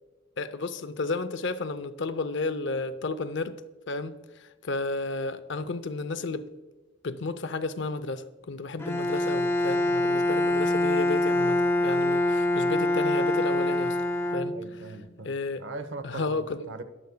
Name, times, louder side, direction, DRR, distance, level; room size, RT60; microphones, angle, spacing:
voice 1, 0.4-3.6 3.9-6.5 7.0-14.0 14.3-14.6 15.2-15.6 16.0-16.7, left 3 dB, 60° left, 0.6 m, -32 dB
Bowed string instrument, 8.8-15.0, left 1 dB, 10° left, 0.3 m, -25 dB
voice 2, 14.5-15.3 15.6-16.8, right 3 dB, 65° right, 0.8 m, -40 dB
21.0 x 7.9 x 2.2 m
head